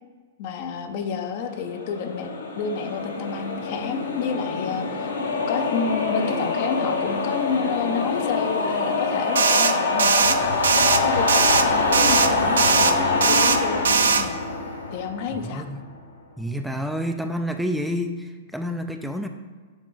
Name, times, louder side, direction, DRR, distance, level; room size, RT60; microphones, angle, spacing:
voice 1, 0.4-2.3 2.6-5.1 5.5-10.8 11.0-14.4 14.9-15.6, left 6 dB, 50° left, 7 dB, 0.6 m, -30 dB
sound 1, 1.4-15.7, left 3 dB, 75° left, 1.0 m, -25 dB
sound 2, 9.4-9.7 10.0-10.3 10.6-11.0 11.3-11.6 11.9-12.3 12.6-12.9 13.2-13.6 13.9-14.2, right 5 dB, 70° right, 0.4 m, -19 dB
voice 2, 15.4-15.8 16.4-19.3, equal, ahead, 5 dB, 0.3 m, -29 dB
7.1 x 3.9 x 3.8 m, 1.5 s
figure-of-eight pair, 105°, 0 cm